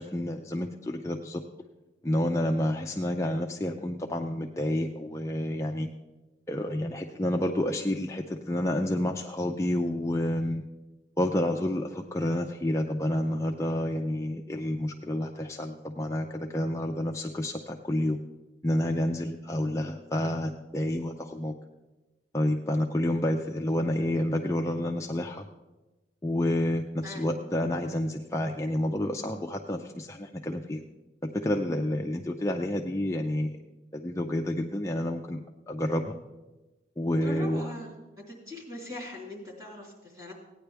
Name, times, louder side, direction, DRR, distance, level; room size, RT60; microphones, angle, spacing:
voice 1, 0.0-1.4 2.0-5.9 6.5-10.6 11.2-18.2 18.6-21.5 22.3-25.5 26.2-30.8 31.3-33.6 33.9-35.4 35.7-36.2 37.0-37.6, left 1 dB, 15° left, 2 dB, 0.4 m, -29 dB
voice 2, 27.0-27.6 37.2-37.9 38.3-40.3, left 1 dB, 25° right, -2 dB, 3.2 m, -40 dB
16.5 x 9.7 x 3.4 m, 1.1 s
head